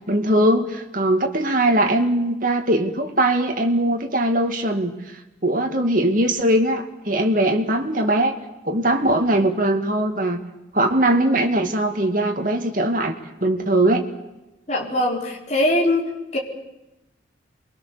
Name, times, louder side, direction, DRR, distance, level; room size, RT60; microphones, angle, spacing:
voice 1, 0.1-4.9 5.4-8.4 8.6-10.4 10.7-13.1 13.4-14.0, right 1 dB, 45° right, 4 dB, 2.5 m, -20 dB
voice 2, 14.7-16.1 16.3-16.4, left 1 dB, 35° left, -2 dB, 4.3 m, -21 dB
28.0 x 23.0 x 7.0 m, 0.97 s
head